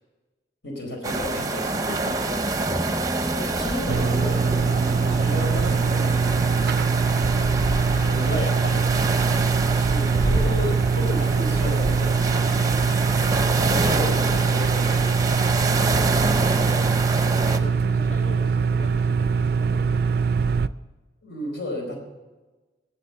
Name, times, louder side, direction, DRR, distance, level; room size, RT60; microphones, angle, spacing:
voice 1, 0.6-1.9 3.0-6.9 8.0-9.0 9.7-12.6 13.6-15.3 16.6-17.0 21.2-22.0, left 1 dB, 70° left, 2 dB, 4.4 m, -33 dB
sound 1, 1.0-17.6, right 2 dB, 20° right, 0.7 m, -27 dB
voice 2, 1.9-2.7 12.7-12.9 17.4-20.5, left 2 dB, 40° left, 3 dB, 0.8 m, -42 dB
sound 2, 2.7-13.4, right 1 dB, ahead, 1.1 m, -37 dB
sound 3, 3.9-20.7, right 5 dB, 55° right, 0.4 m, -23 dB
19.0 x 7.4 x 6.9 m, 1.2 s
head